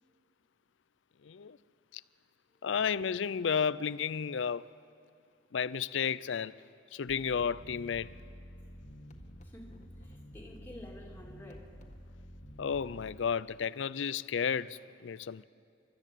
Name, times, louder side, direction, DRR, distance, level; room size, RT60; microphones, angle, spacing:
voice 1, 1.2-1.6 1.9-2.0 2.6-4.6 5.5-6.5 6.9-8.1 12.6-15.4, left 7 dB, 85° left, 0.5 m, -32 dB
sound 1, 7.1-13.2, equal, 40° left, 1.6 m, -50 dB
voice 2, 9.4-11.8, left 1 dB, 10° left, 2.4 m, -50 dB
29.5 x 13.0 x 8.4 m
head